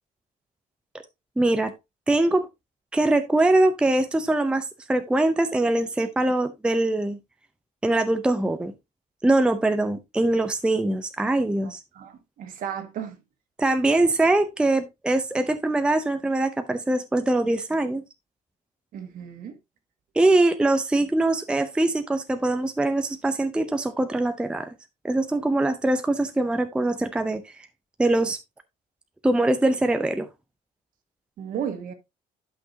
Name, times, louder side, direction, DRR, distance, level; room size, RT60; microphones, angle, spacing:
voice 1, 1.4-1.7 2.1-2.5 2.9-7.2 7.8-8.7 9.2-11.8 13.6-18.0 20.1-24.7 25.0-27.5 28.0-28.4 29.2-30.3, right 2 dB, 5° right, 0.6 m, -22 dB
voice 2, 11.9-13.2 18.9-19.5 31.4-31.9, right 8 dB, 60° right, 1.8 m, -34 dB
11.5 x 5.9 x 2.7 m
cardioid pair, 160°, 16 cm